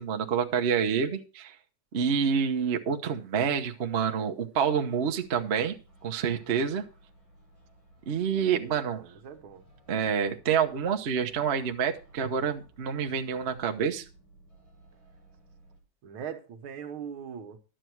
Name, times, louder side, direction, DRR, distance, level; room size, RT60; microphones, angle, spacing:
voice 1, 0.0-1.6 1.9-5.8 6.0-6.8 8.1-9.0 9.9-14.0, right 7 dB, 50° right, 0.7 m, -27 dB
sound 1, 5.0-15.8, right 1 dB, 65° left, 8.9 m, -58 dB
voice 2, 8.6-9.6 16.0-17.6, right 7 dB, 75° right, 1.9 m, -41 dB
11.5 x 7.8 x 4.6 m
omnidirectional pair, 2.4 m